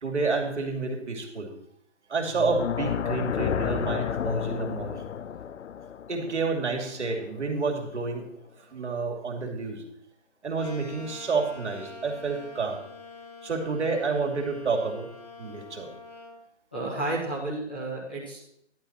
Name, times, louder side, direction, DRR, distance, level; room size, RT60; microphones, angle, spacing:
voice 1, 0.0-1.5 2.1-5.0 6.1-8.3 8.7-9.8 10.4-12.8 13.4-15.1 15.4-15.9, right 4 dB, 75° right, 2 dB, 2.6 m, -29 dB
sound 1, 2.3-7.4, left 8 dB, 85° left, 0.6 m, -31 dB
sound 2, 10.6-16.4, left 3 dB, 35° left, 2.0 m, -45 dB
voice 2, 16.7-18.5, right 2 dB, 10° left, -8 dB, 0.8 m, -32 dB
11.5 x 9.4 x 4.3 m, 0.74 s
hypercardioid pair, 180°, 35 cm